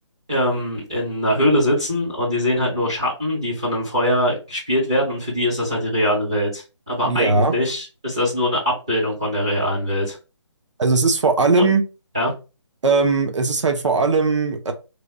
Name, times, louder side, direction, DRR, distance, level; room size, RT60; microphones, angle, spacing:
voice 1, 0.3-10.2 11.6-11.7 12.1-12.3, left 1 dB, 10° right, -7 dB, 0.4 m, -22 dB
voice 2, 7.0-7.5 10.8-11.8 12.8-14.7, right 4 dB, 75° right, 5 dB, 0.8 m, -18 dB
3.3 x 2.3 x 3.9 m, 0.30 s
hypercardioid pair, 175°, 15 cm